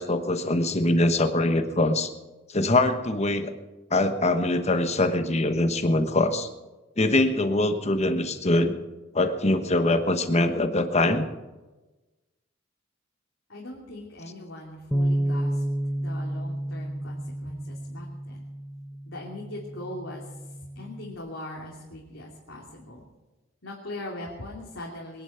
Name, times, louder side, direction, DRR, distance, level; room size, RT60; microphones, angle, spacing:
voice 1, 0.0-2.1 2.5-3.5 3.9-6.5 7.0-8.7 9.1-11.3, left 2 dB, 35° left, 8 dB, 1.2 m, -23 dB
voice 2, 13.5-15.6 16.0-18.4 19.1-20.3 20.7-23.0 23.6-25.2, left 1 dB, 80° left, -3 dB, 2.9 m, -40 dB
Bass guitar, 14.9-21.1, right 1 dB, 5° left, 0.9 m, -31 dB
21.5 x 11.0 x 5.8 m, 1.1 s
head